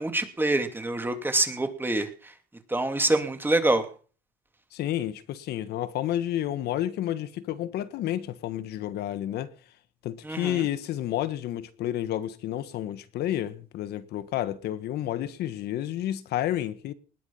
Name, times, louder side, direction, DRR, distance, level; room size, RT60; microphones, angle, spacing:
voice 1, 0.0-2.3 2.7-3.9 10.2-10.6, right 2 dB, 10° right, 2.9 m, -26 dB
voice 2, 4.7-9.5 10.0-16.9, left 12 dB, 75° left, 1.5 m, -30 dB
20.0 x 9.8 x 5.7 m
cardioid pair, 110°, 17 cm